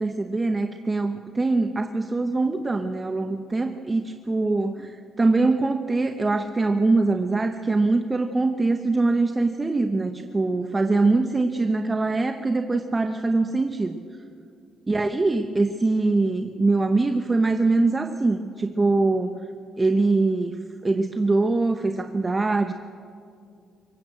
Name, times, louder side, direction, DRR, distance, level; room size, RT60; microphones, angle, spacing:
voice 1, 0.0-14.0 14.9-19.4 19.8-22.7, right 3 dB, 25° right, 6 dB, 1.0 m, -23 dB
23.0 x 18.5 x 7.8 m, 2.3 s
cardioid pair, 90°, 0 cm